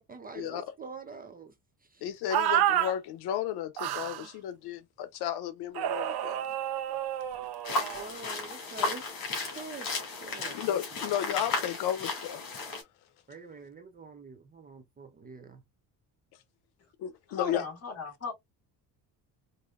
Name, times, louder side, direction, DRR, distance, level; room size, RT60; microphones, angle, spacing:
voice 1, 0.1-1.5 1.9-2.1 4.2-4.3 7.9-9.0 9.5-9.9 10.2-10.8 13.3-15.6, right 4 dB, 25° right, 0.5 m, -45 dB
voice 2, 2.0-6.4 10.3-12.4 17.0-17.7, left 11 dB, 85° left, 0.8 m, -33 dB
sound 1, 2.3-2.9 3.8-4.3 5.8-8.1, right 11 dB, 80° right, 0.8 m, -29 dB
Going on a forest road gravel and grass, 7.6-12.8, left 3 dB, 60° left, 2.3 m, -34 dB
voice 3, 17.3-18.3, left 6 dB, 40° left, 2.0 m, -36 dB
5.0 x 2.6 x 2.4 m
cardioid pair, 150°, 38 cm